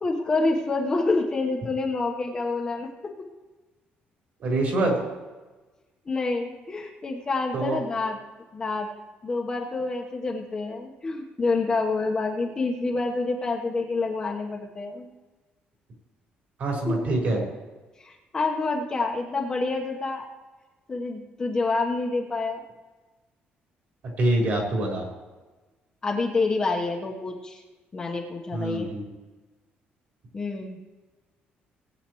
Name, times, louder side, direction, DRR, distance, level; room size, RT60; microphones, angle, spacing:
voice 1, 0.0-3.3 6.0-8.2 8.5-8.9 9.2-15.1 16.9-17.0 18.0-20.3 20.9-22.6 26.0-27.6 27.9-28.9 30.3-30.8, left 3 dB, 20° left, 1 dB, 1.2 m, -27 dB
voice 2, 4.4-4.9 7.5-7.8 16.6-17.4 24.2-25.0 28.5-29.1, right 2 dB, 50° right, -2 dB, 4.5 m, -25 dB
19.0 x 9.1 x 3.1 m, 1.2 s
cardioid pair, 170°, 4 cm